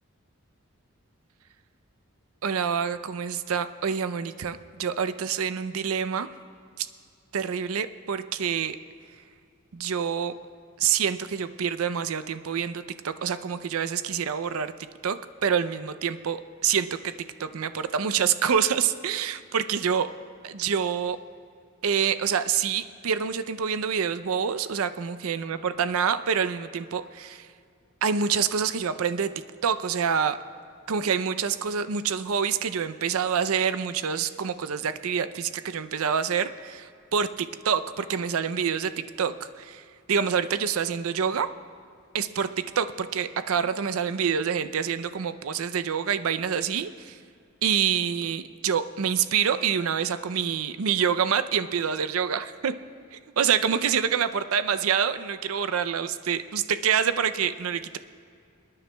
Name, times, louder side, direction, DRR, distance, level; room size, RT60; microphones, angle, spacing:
voice 1, 2.4-6.3 6.8-6.9 7.3-8.8 9.7-10.3 10.8-14.7 15.0-17.1 17.4-20.1 20.4-21.2 21.8-27.4 28.0-29.3 29.6-30.4 30.9-39.8 40.1-41.5 42.1-42.5 42.8-47.2 47.6-52.7 53.4-58.0, right 7 dB, 70° right, 12 dB, 0.5 m, -26 dB
28.0 x 9.8 x 2.2 m, 2.3 s
head